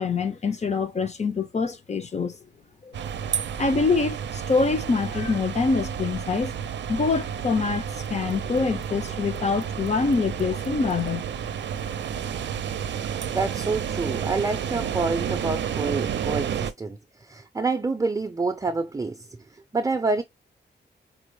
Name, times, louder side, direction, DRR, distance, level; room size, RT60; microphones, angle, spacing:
voice 1, 0.0-2.4 2.8-3.0 3.2-3.3 3.6-6.5 6.9-11.2, left 4 dB, 40° left, 0.8 m, -25 dB
sound 1, 2.9-16.7, right 8 dB, 80° right, 0.5 m, -31 dB
voice 2, 13.3-19.4 19.7-20.2, right 3 dB, 20° right, 0.5 m, -27 dB
5.2 x 2.0 x 3.2 m
wide cardioid pair, 110°, 18 cm